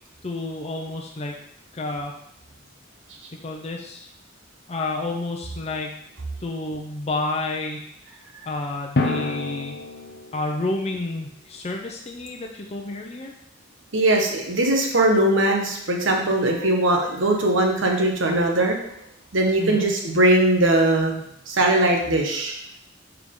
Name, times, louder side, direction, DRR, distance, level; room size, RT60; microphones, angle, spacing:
voice 1, 0.2-1.4 1.7-2.1 3.4-4.1 4.7-6.0 6.4-7.9 8.5-9.8 10.3-13.3 19.6-19.9, left 2 dB, 35° left, 1 dB, 0.6 m, -30 dB
Drum, 9.0-10.7, left 3 dB, 60° left, 0.9 m, -28 dB
voice 2, 13.9-18.8 19.3-21.2 21.5-22.6, right 1 dB, 75° right, 1 dB, 1.3 m, -20 dB
7.2 x 4.6 x 3.8 m, 0.75 s
head